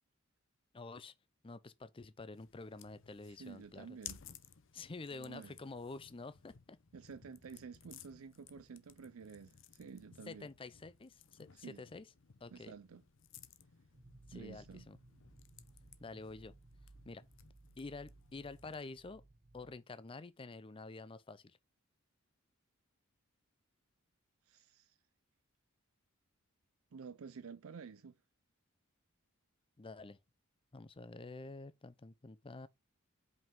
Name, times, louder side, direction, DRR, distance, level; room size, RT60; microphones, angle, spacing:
voice 1, 0.7-1.1 1.4-3.9 4.7-6.8 10.3-12.1 12.4-12.7 14.3-15.0 16.0-16.5 17.1-17.2 17.8-19.2 19.5-21.6 29.8-30.2 30.7-32.7, left 3 dB, 25° left, 0.5 m, -48 dB
sound 1, 2.3-19.0, left 10 dB, 60° left, 0.7 m, -59 dB
voice 2, 3.3-4.2 5.1-5.5 6.9-10.5 11.5-11.8 12.5-13.0 14.3-14.9 24.4-25.0 26.9-28.1, right 5 dB, 75° right, 0.5 m, -51 dB
Fire, 6.4-16.7, left 2 dB, 80° left, 1.3 m, -74 dB
sound 2, 13.9-19.8, right 2 dB, 30° right, 0.7 m, -61 dB
5.4 x 5.4 x 3.7 m
head